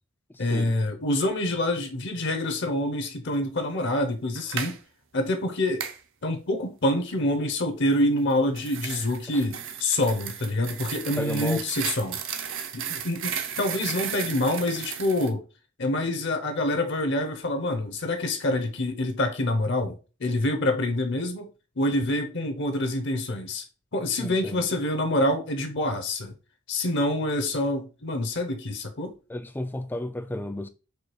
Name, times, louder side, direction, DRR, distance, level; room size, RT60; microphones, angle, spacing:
voice 1, 0.4-4.7 5.1-5.8 6.2-12.2 12.7-15.4 15.8-21.5 21.8-23.6 23.9-26.3 26.7-29.2, left 1 dB, 55° left, 0.8 m, -26 dB
sound 1, 4.4-4.8 5.8-6.0 8.2-15.3, right 8 dB, 60° right, 0.7 m, -34 dB
voice 2, 11.2-11.6 24.2-24.7 29.3-30.7, left 1 dB, 10° left, 0.3 m, -32 dB
4.8 x 2.3 x 4.6 m
head